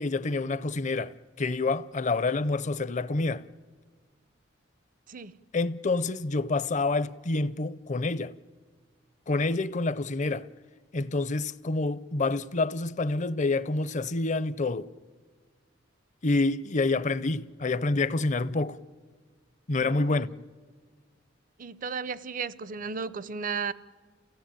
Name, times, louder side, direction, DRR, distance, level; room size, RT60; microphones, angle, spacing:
voice 1, 0.0-3.4 5.5-8.3 9.3-10.5 10.9-14.9 16.2-18.8 19.7-20.3, left 3 dB, 40° left, 0.6 m, -27 dB
voice 2, 19.7-20.2 21.6-23.7, right 5 dB, 45° right, 0.6 m, -34 dB
29.5 x 16.5 x 9.0 m
head